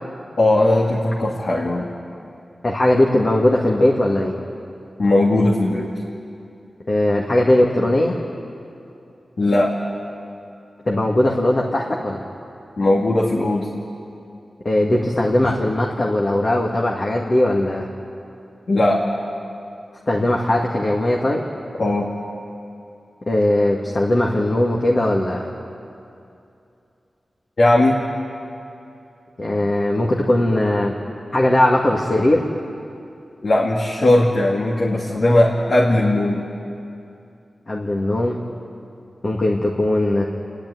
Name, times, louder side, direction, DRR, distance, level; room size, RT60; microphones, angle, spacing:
voice 1, 0.4-1.9 5.0-5.9 9.4-9.7 12.8-13.7 18.7-19.0 21.8-22.1 27.6-28.0 33.4-36.4, left 1 dB, 70° left, -3 dB, 2.2 m, -18 dB
voice 2, 2.6-4.3 6.9-8.2 10.9-12.2 14.6-17.9 20.1-21.4 23.3-25.5 29.4-31.0 31.3-32.4 37.7-38.4 39.2-40.2, left 1 dB, 50° left, -2 dB, 2.0 m, -19 dB
28.0 x 11.0 x 9.4 m, 2.7 s
cardioid pair, 60°, 0 cm